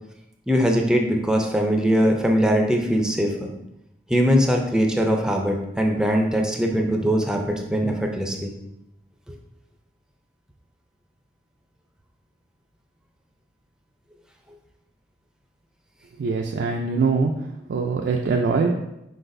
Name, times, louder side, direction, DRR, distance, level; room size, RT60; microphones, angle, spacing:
voice 1, 0.5-3.5 4.1-8.5, equal, 5° right, 2 dB, 0.5 m, -21 dB
voice 2, 16.2-17.3 17.7-18.7, right 4 dB, 80° right, 1 dB, 0.4 m, -22 dB
5.2 x 4.0 x 2.6 m, 0.88 s
head